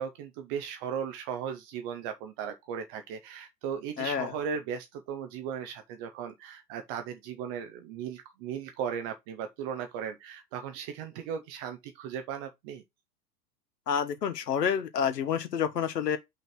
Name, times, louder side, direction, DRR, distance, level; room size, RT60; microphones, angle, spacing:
voice 1, 0.0-12.8, right 7 dB, 20° right, 0.3 m, -37 dB
voice 2, 4.0-4.3 13.9-16.2, left 7 dB, 75° left, 1.2 m, -28 dB
5.5 x 3.8 x 5.8 m
figure-of-eight pair, 95°, 48 cm